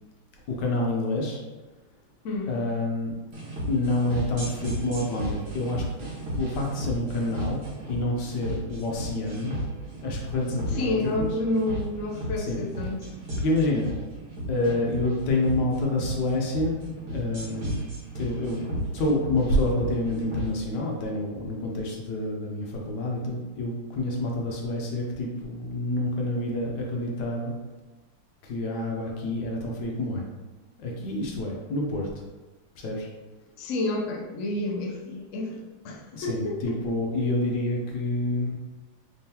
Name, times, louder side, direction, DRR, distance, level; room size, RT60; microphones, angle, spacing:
voice 1, 0.5-1.4 2.5-3.1 3.7-5.9 6.3-7.6 7.9-9.5 10.0-11.3 12.4-12.6 13.4-13.9 14.5-17.9 18.1-18.6 18.9-27.5 28.4-30.2 30.8-32.1 32.8-33.1 36.1-38.6, left 2 dB, 65° left, -1 dB, 1.3 m, -28 dB
voice 2, 2.2-2.6 10.7-13.1 33.6-36.8, left 2 dB, 85° left, -1 dB, 0.6 m, -30 dB
sound 1, 3.3-20.5, equal, 80° right, 2.2 m, -34 dB
4.4 x 3.5 x 2.8 m, 1.2 s
omnidirectional pair, 2.3 m